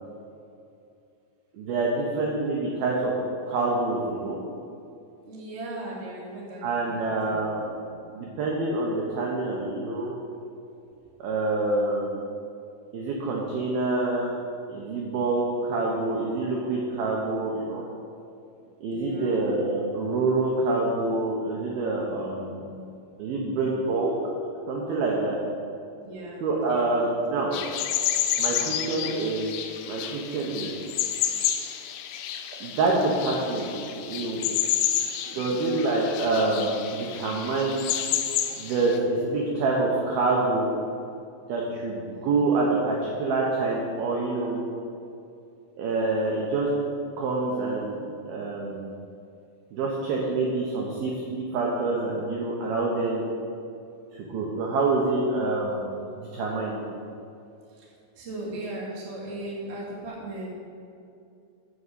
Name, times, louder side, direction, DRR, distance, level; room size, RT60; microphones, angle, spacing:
voice 1, 1.5-3.1 3.5-4.4 6.6-7.6 8.1-10.2 11.2-12.2 12.9-14.3 14.7-17.8 18.8-22.7 23.2-24.1 24.7-25.4 26.4-27.5 28.4-29.6 29.8-30.7 32.6-33.7 34.1-34.4 35.3-37.8 38.5-40.7 41.5-44.6 45.8-46.7 47.2-48.9 49.7-53.3 54.1-55.9 56.2-56.8, right 3 dB, 85° right, -2 dB, 2.1 m, -26 dB
voice 2, 5.2-7.8 18.9-19.4 26.0-26.8 28.5-28.9 35.2-35.6 42.1-42.2 57.7-60.5, right 1 dB, 50° right, -6 dB, 0.7 m, -38 dB
sound 1, 27.5-39.0, left 10 dB, 85° left, 3.3 m, -30 dB
7.8 x 7.1 x 8.1 m, 2.5 s
omnidirectional pair, 6.0 m